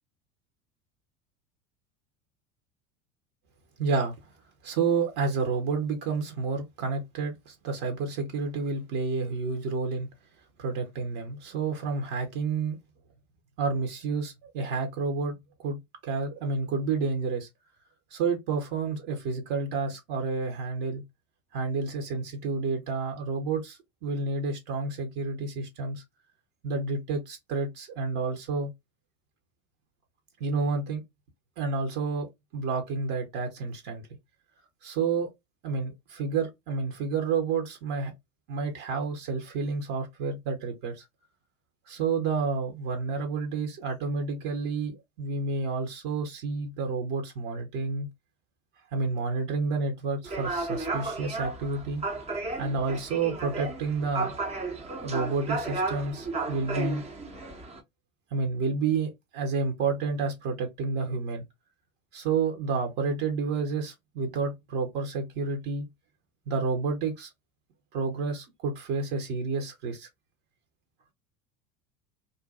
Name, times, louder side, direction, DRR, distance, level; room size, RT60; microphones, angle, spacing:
voice 1, 3.8-4.1 4.6-10.1 10.6-12.8 13.6-15.8 16.0-17.5 18.1-21.0 21.5-26.0 26.6-28.7 30.4-31.0 31.6-34.0 34.8-35.3 35.6-38.1 38.5-41.1 41.9-48.1 48.9-52.0 52.6-54.4 55.0-57.1 58.3-61.4 62.1-65.9 66.5-67.3 67.9-70.1, right 4 dB, 50° right, 0.9 m, -30 dB
sound 1, 50.2-57.8, right 3 dB, 15° right, 0.5 m, -33 dB
2.6 x 2.3 x 2.3 m
hypercardioid pair, 80°, 41 cm